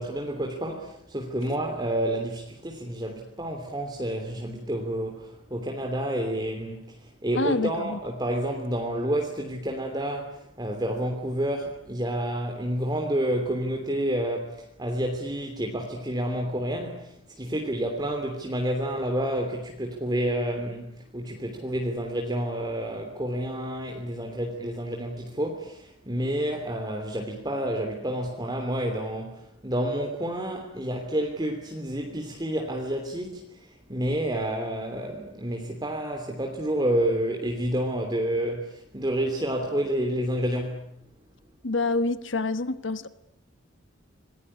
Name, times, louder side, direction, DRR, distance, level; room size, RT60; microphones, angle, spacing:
voice 1, 0.0-40.9, right 1 dB, 20° right, 3.1 m, -29 dB
voice 2, 7.3-8.0 41.6-43.1, left 2 dB, 65° left, 1.2 m, -27 dB
27.0 x 20.5 x 9.9 m
head